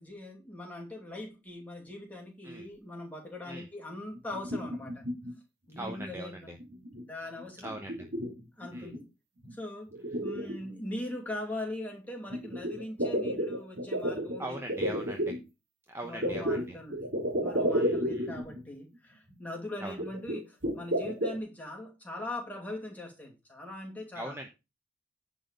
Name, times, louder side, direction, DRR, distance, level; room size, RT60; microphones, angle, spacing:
voice 1, 0.0-5.0 5.7-6.5 7.0-7.8 8.6-9.1 9.5-9.9 10.2-15.0 16.0-17.1 17.4-24.4, left 1 dB, 10° left, 2.6 m, -41 dB
sound 1, 4.1-5.3 5.8-6.1 6.6-7.0 7.4-9.0 9.4-9.5 9.9-11.2 12.3-15.4 16.2-18.6 18.9-19.0 19.3-19.4 20.0-21.4, equal, 55° right, 2.4 m, -32 dB
voice 2, 5.8-6.6 7.6-8.1 8.7-8.9 10.4-10.5 14.4-15.3 15.9-16.8 17.7-18.3 19.8-19.9 24.1-24.5, right 1 dB, 10° right, 0.9 m, -41 dB
10.0 x 4.1 x 6.8 m
head